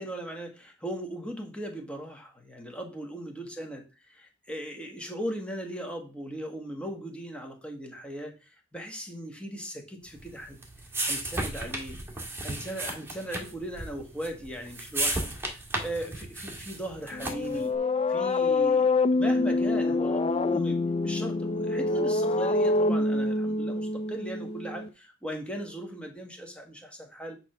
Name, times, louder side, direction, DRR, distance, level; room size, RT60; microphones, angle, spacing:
voice 1, 0.0-3.8 4.5-10.6 11.0-12.0 12.4-17.7 18.1-27.4, right 1 dB, 5° left, 3 dB, 1.5 m, -38 dB
sound 1, 10.2-17.6, right 2 dB, 10° right, 1.9 m, -34 dB
sound 2, 17.1-24.9, left 2 dB, 30° left, 0.5 m, -26 dB
9.7 x 3.5 x 5.9 m, 0.31 s
head